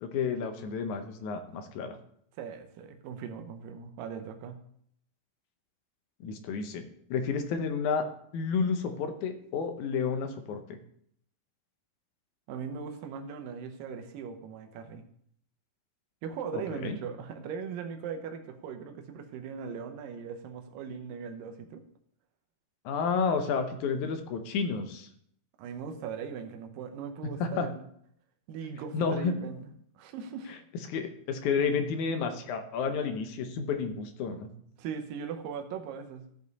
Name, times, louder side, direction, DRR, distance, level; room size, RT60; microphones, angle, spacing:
voice 1, 0.0-2.0 6.2-6.8 7.1-8.0 8.3-10.8 16.5-17.0 22.9-25.1 27.2-27.7 28.9-29.3 30.9-34.5, left 5 dB, 70° left, 7 dB, 2.1 m, -31 dB
voice 2, 2.4-4.6 12.5-15.0 16.2-21.8 25.6-27.8 28.5-30.6 34.8-36.3, right 6 dB, 85° right, 6 dB, 2.5 m, -39 dB
14.0 x 5.3 x 4.0 m, 0.68 s
omnidirectional pair, 3.9 m